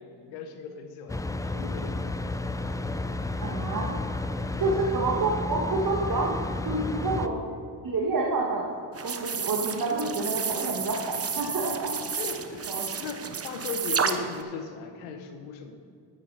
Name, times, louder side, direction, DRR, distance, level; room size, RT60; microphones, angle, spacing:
voice 1, 0.0-2.0 4.6-4.8 12.1-12.7 13.0-15.8, left 5 dB, 90° left, 6 dB, 1.1 m, -37 dB
sound 1, 1.1-7.3, left 2 dB, 5° left, 0.6 m, -32 dB
voice 2, 3.4-3.9 4.6-6.3 6.6-7.4 7.8-8.7 9.0-11.9 12.7-12.8, right 3 dB, 50° right, -3 dB, 1.9 m, -28 dB
sound 2, 8.9-14.4, right 6 dB, 30° right, 0.9 m, -32 dB
12.0 x 9.2 x 4.2 m, 2.3 s
supercardioid pair, 55°, 45 cm